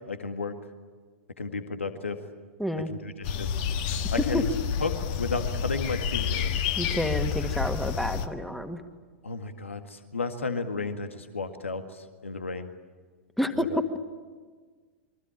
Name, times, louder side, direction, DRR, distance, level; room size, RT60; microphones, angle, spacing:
voice 1, 0.1-0.5 1.4-2.2 2.9-3.6 4.1-4.5 4.8-6.5 9.2-11.8 12.2-12.7 13.7-13.8, left 4 dB, 75° left, 8 dB, 1.9 m, -33 dB
voice 2, 2.6-2.9 4.3-4.4 6.8-8.8 13.4-13.7, left 1 dB, ahead, 7 dB, 2.0 m, -29 dB
sound 1, 3.2-8.3, left 7 dB, 45° left, 1.6 m, -29 dB
27.5 x 23.0 x 8.9 m, 1.5 s
figure-of-eight pair, 100°, 7 cm